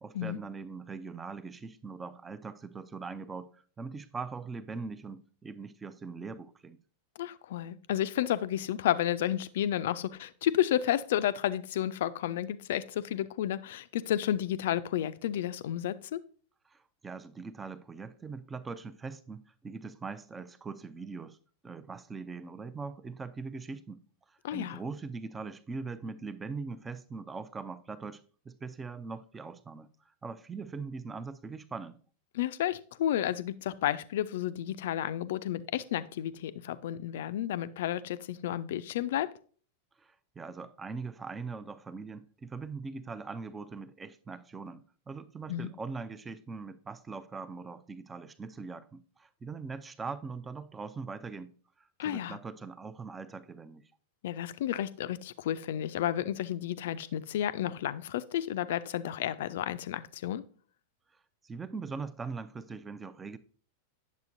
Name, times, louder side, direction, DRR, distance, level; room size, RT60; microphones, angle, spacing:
voice 1, 0.0-6.8 16.7-21.4 21.6-24.0 24.3-32.0 40.0-53.8 61.1-63.4, right 4 dB, 15° right, 0.5 m, -41 dB
voice 2, 7.2-16.2 24.4-24.8 32.3-39.3 45.5-45.7 52.0-52.4 54.2-60.4, left 11 dB, 55° left, 0.4 m, -31 dB
9.3 x 7.3 x 2.6 m
figure-of-eight pair, 90°, 0 cm